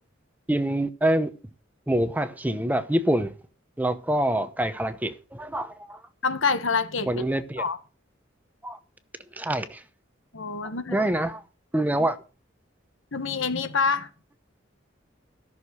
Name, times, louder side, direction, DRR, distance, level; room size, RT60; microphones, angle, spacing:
voice 1, 0.5-1.3 1.9-3.3 3.8-6.0 7.1-7.6 8.6-8.8 9.3-9.8 10.9-11.4 11.7-12.2, right 1 dB, 10° right, 0.7 m, -25 dB
voice 2, 6.2-7.1 7.6-7.8 10.3-11.0 13.1-14.1, left 5 dB, 80° left, 1.4 m, -26 dB
14.0 x 6.5 x 6.3 m
head